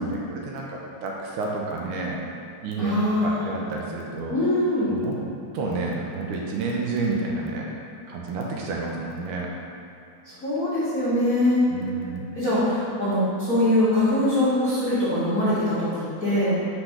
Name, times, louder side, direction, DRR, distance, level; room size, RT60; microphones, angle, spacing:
voice 1, 0.0-2.2 2.6-2.9 3.2-4.4 4.9-5.1 5.5-7.7 8.1-9.5 11.7-12.2, right 3 dB, 75° right, -2 dB, 2.1 m, -30 dB
voice 2, 2.8-3.4 4.3-4.9 10.2-11.6 12.3-16.5, left 1 dB, 45° left, -12 dB, 1.2 m, -23 dB
6.1 x 3.4 x 5.8 m, 2.8 s
omnidirectional pair, 3.7 m